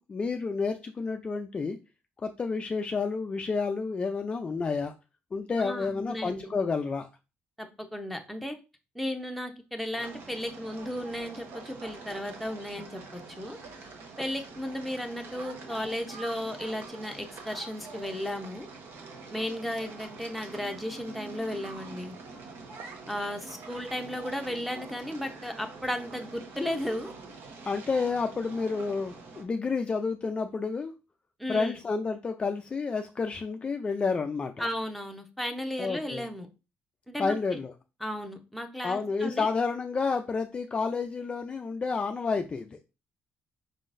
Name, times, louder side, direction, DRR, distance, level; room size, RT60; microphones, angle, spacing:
voice 1, 0.0-1.8 2.2-4.9 5.3-7.1 27.6-30.9 31.5-34.7 35.8-36.2 37.2-37.7 38.8-42.8, left 4 dB, 25° left, 5 dB, 0.4 m, -30 dB
voice 2, 5.6-6.5 7.6-8.6 8.9-13.6 14.2-18.7 19.3-22.2 23.1-27.1 31.4-31.8 34.6-36.5 37.1-37.4 38.0-39.5, left 1 dB, ahead, 3 dB, 0.7 m, -35 dB
sound 1, 9.9-29.4, right 4 dB, 70° right, 1.2 m, -45 dB
5.3 x 3.8 x 2.5 m, 0.29 s
cardioid pair, 140°, 4 cm